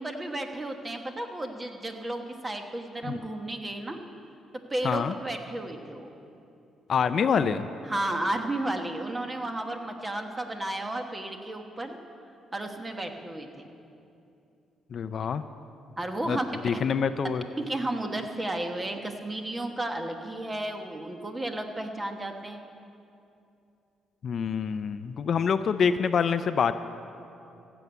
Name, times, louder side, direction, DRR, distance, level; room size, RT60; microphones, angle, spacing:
voice 1, 0.0-4.0 4.5-6.1 7.8-12.0 12.5-13.7 16.0-16.4 16.7-16.8 17.6-22.6, right 1 dB, 20° right, 4 dB, 1.3 m, -33 dB
voice 2, 6.9-7.7 14.9-15.4 16.3-16.4 16.6-17.4 24.2-26.7, left 6 dB, 55° left, 11 dB, 0.5 m, -26 dB
15.5 x 7.1 x 8.1 m, 2.7 s
cardioid pair, 90°, 0 cm